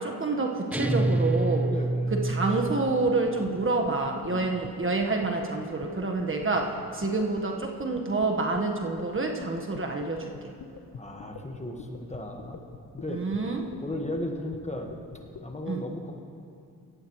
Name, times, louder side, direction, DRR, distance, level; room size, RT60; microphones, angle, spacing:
voice 1, 0.0-1.7 2.1-10.5 13.1-13.6 15.7-15.8, right 3 dB, 35° right, 2 dB, 1.5 m, -28 dB
sound 1, 0.7-3.3, right 2 dB, 5° right, 0.3 m, -27 dB
voice 2, 1.7-2.1 4.2-4.5 10.9-12.6 12.9-13.2 13.8-14.9 15.4-16.1, left 1 dB, 20° left, 2 dB, 1.6 m, -35 dB
sound 2, 1.9-15.5, left 7 dB, 60° left, 1.1 m, -44 dB
18.0 x 14.0 x 3.2 m, 2.5 s
supercardioid pair, 50°, 37 cm